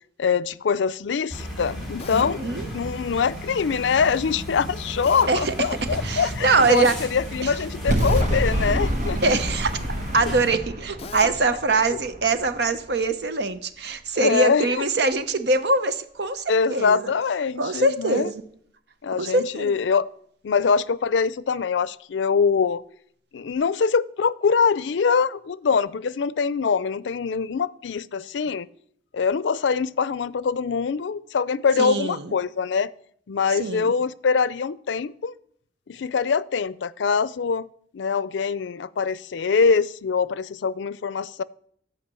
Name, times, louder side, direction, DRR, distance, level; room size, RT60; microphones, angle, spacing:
voice 1, 0.2-9.4 11.8-12.0 14.2-14.9 16.5-18.3 19.0-20.0 20.4-22.8 23.3-28.7 29.1-32.9 33.3-35.3 35.9-37.7 37.9-41.4, left 5 dB, 90° left, 19 dB, 0.4 m, -23 dB
sound 1, 1.3-10.5, equal, ahead, 3.7 m, -34 dB
Drill, 2.0-2.4 5.0-5.4 8.0-8.4 11.0-11.4, left 4 dB, 35° left, 0.5 m, -36 dB
voice 2, 2.1-2.7 5.3-5.5 6.0-6.9 7.4-7.5 9.2-9.7 10.1-17.1 17.6-18.4 19.1-19.7 31.8-32.3 33.6-33.9, right 3 dB, 65° right, 10 dB, 0.8 m, -23 dB
sound 2, 7.9-13.0, equal, 45° right, 1.1 m, -27 dB
13.5 x 5.0 x 7.5 m, 0.66 s
head